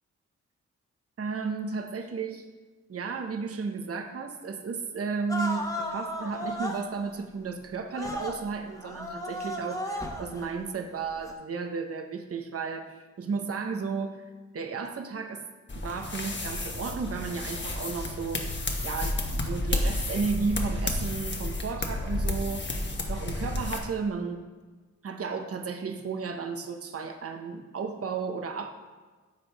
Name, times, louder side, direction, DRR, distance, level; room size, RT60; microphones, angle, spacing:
voice 1, 1.2-2.4 2.9-14.2 14.5-15.4 15.7-18.4 18.8-22.7 23.1-24.4 25.0-28.7, right 5 dB, 50° right, 5 dB, 0.9 m, -33 dB
sound 1, 5.3-6.8 7.9-8.4 8.8-10.4 11.2-11.3, equal, 10° left, 1.2 m, -34 dB
sound 2, 15.7-23.8, left 2 dB, 40° left, 1.2 m, -31 dB
10.5 x 7.0 x 3.4 m, 1.4 s
wide cardioid pair, 90°, 29 cm